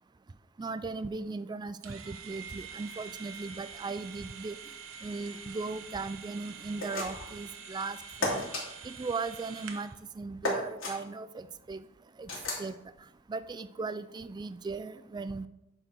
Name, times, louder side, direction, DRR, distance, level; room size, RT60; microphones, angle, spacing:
voice 1, 0.6-4.6 5.0-8.5 8.8-9.9 10.2-11.8 12.2-12.3 12.6-12.8 13.3-15.5, right 4 dB, 20° right, 12 dB, 0.3 m, -37 dB
water pick squirting excess water, 1.8-10.0, right 6 dB, 80° right, 0.9 m, -46 dB
sound 1, 6.8-7.4 8.2-8.6 10.4-11.0 12.3-12.7, left 2 dB, 85° left, 3.1 m, -33 dB
9.7 x 4.6 x 5.1 m, 0.89 s
head